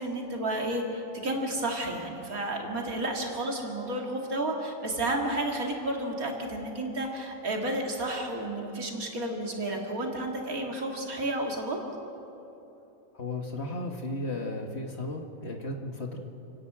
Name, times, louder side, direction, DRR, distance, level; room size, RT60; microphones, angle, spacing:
voice 1, 0.0-11.8, right 1 dB, 80° right, 1 dB, 2.6 m, -31 dB
voice 2, 13.1-16.2, left 2 dB, 50° left, 2 dB, 1.7 m, -35 dB
28.0 x 11.0 x 8.7 m, 3.0 s
omnidirectional pair, 1.5 m